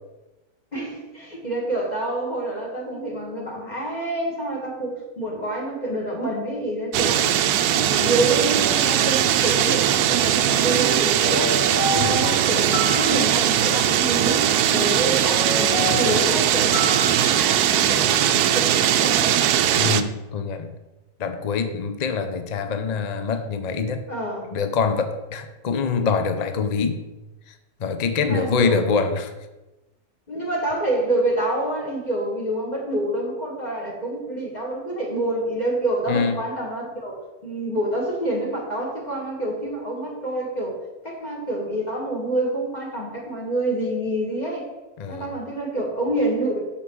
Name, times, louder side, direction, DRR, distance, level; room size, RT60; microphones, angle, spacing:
voice 1, 0.7-7.4 7.7-11.6 11.9-16.8 17.0-19.4 24.1-24.6 28.2-28.9 30.3-37.1 37.4-44.7 45.1-46.6, right 1 dB, 30° left, -2 dB, 1.6 m, -27 dB
sound 1, 6.9-20.0, right 10 dB, 85° right, 1.1 m, -20 dB
sound 2, 10.7-17.4, left 1 dB, 75° left, 4.0 m, -30 dB
voice 2, 11.9-12.2 19.7-20.7 21.2-24.0 24.5-27.0 27.5-27.6 27.8-29.3 36.1-36.4 45.0-45.3, left 5 dB, 50° left, 8 dB, 0.4 m, -25 dB
6.6 x 5.8 x 6.2 m, 1.1 s
omnidirectional pair, 1.6 m